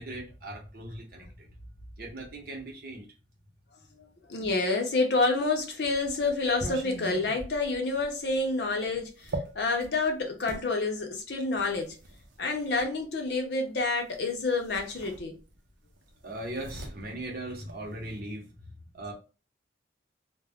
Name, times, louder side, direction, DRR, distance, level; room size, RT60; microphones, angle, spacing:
voice 1, 0.0-1.5 2.0-3.1 16.2-18.5 18.9-19.1, right 1 dB, 50° right, 0.8 m, -39 dB
voice 2, 4.0-12.0 12.4-15.3, left 3 dB, 65° left, 0.6 m, -28 dB
sound 1, 5.3-10.7 11.6-12.9 14.1-14.3 14.6-15.7 16.0-18.2, right 2 dB, 80° right, 0.6 m, -41 dB
2.3 x 2.1 x 3.4 m
head